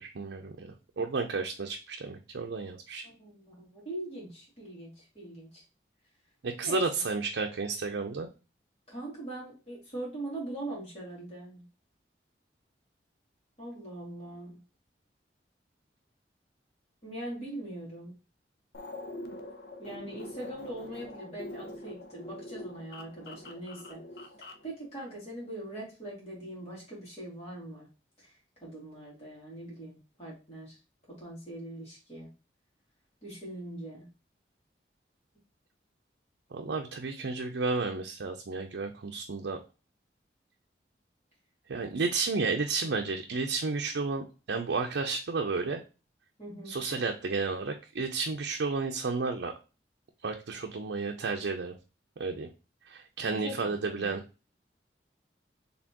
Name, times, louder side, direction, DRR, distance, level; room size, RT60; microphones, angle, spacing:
voice 1, 0.0-3.1 6.4-8.3 36.5-39.6 41.7-45.8 46.7-49.5 50.2-51.7 52.2-52.5 52.9-54.2, right 4 dB, 85° right, 2 dB, 0.5 m, -32 dB
voice 2, 3.0-5.6 6.6-7.0 8.9-11.7 13.6-14.6 17.0-18.1 19.8-24.0 24.4-27.9 28.2-28.3 28.6-30.8 31.1-32.3 33.2-34.1 46.4-46.8 53.2-54.1, right 1 dB, 35° left, -5 dB, 2.3 m, -42 dB
sound 1, 18.7-24.7, left 1 dB, 65° left, 0.6 m, -44 dB
4.2 x 3.5 x 2.9 m, 0.32 s
head